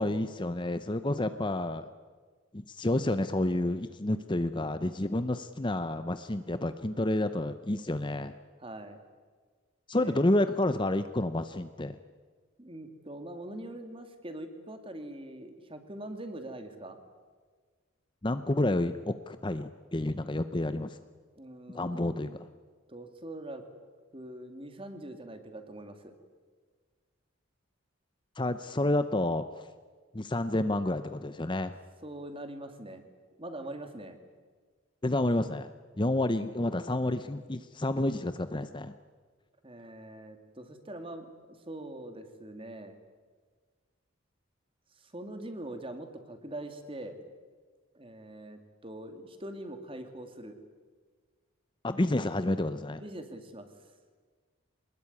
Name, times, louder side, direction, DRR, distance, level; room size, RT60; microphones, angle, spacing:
voice 1, 0.0-1.9 2.5-8.3 9.9-12.0 18.2-21.0 21.7-22.4 28.4-29.7 30.1-31.7 35.0-35.7 36.0-38.9 51.8-53.0, left 1 dB, 20° left, 11 dB, 0.7 m, -29 dB
voice 2, 8.6-9.0 9.9-10.2 12.6-17.0 21.4-22.4 22.9-23.6 24.1-26.1 32.0-33.0 33.4-34.2 39.6-43.0 44.9-47.2 47.9-50.6 53.0-53.7, right 1 dB, 25° right, 7 dB, 2.3 m, -43 dB
24.0 x 20.5 x 9.8 m, 1.5 s
head